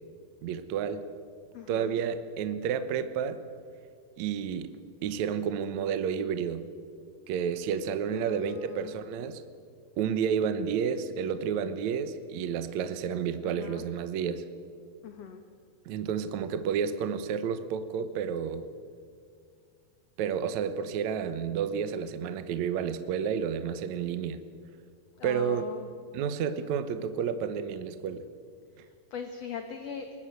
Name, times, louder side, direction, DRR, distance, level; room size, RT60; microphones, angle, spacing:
voice 1, 0.4-1.1 1.7-3.4 4.2-4.8 5.0-6.7 7.3-9.4 10.0-14.5 15.9-18.7 20.2-24.4 25.2-25.6 26.1-28.3, right 7 dB, 70° right, 11 dB, 1.8 m, -31 dB
voice 2, 1.5-1.9 8.1-9.0 13.4-13.8 15.0-15.4 25.2-25.9 29.1-30.1, left 7 dB, 60° left, 6 dB, 1.9 m, -40 dB
23.0 x 19.5 x 8.0 m, 2.2 s
omnidirectional pair, 4.3 m